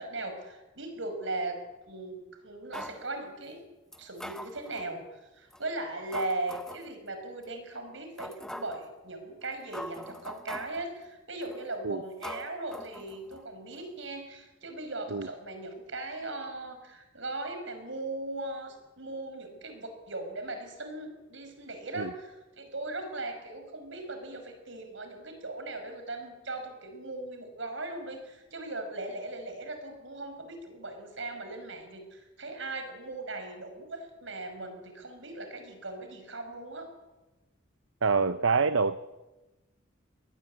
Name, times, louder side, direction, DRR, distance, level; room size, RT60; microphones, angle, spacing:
voice 1, 0.0-3.7 4.0-36.9, right 2 dB, 65° right, 6 dB, 5.6 m, -38 dB
sound 1, 2.7-3.0 3.9-4.9 5.5-5.6 6.1-6.9 7.4-7.5 8.2-8.9 9.4-9.5 9.7-10.9 11.4-11.7 12.2-13.5 13.7-13.8, equal, 5° left, 0.9 m, -42 dB
voice 2, 38.0-39.0, right 4 dB, 85° right, 13 dB, 0.8 m, -26 dB
23.5 x 19.0 x 8.5 m, 1.1 s
head